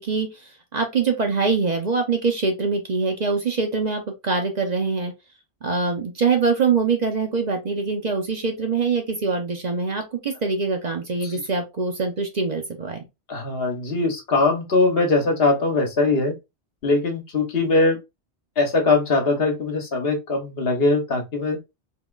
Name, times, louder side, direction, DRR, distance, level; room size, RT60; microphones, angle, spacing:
voice 1, 0.0-5.1 5.6-13.1, right 4 dB, 45° right, 0.7 m, -24 dB
voice 2, 13.3-16.3 16.8-18.0 18.6-21.6, left 3 dB, 60° left, 1.2 m, -21 dB
3.7 x 2.9 x 2.3 m
omnidirectional pair, 1.1 m